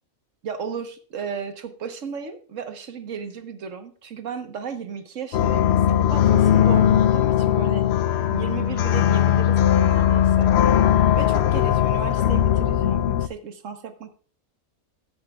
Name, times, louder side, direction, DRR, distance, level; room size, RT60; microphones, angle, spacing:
voice 1, 0.4-7.9 8.3-10.5 11.1-14.1, right 6 dB, 60° right, 8 dB, 1.4 m, -34 dB
sound 1, 5.3-13.3, left 10 dB, 65° left, 0.7 m, -19 dB
16.0 x 8.6 x 2.3 m, 0.41 s
omnidirectional pair, 1.5 m